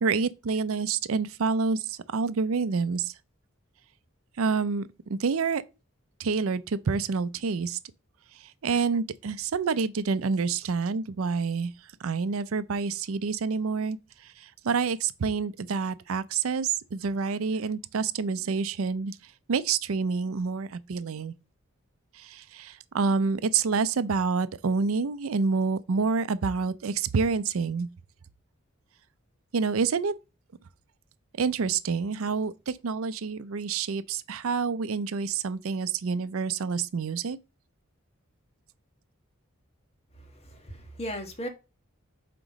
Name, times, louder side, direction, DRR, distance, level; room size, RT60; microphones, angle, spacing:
voice 1, 0.0-3.1 4.4-5.6 6.2-7.8 8.4-11.7 12.0-19.2 19.5-21.3 22.1-27.9 29.5-30.1 31.4-37.4, right 5 dB, 85° right, 0.5 m, -28 dB
voice 2, 40.1-41.5, equal, 30° left, 1.3 m, -37 dB
7.6 x 3.0 x 5.1 m
head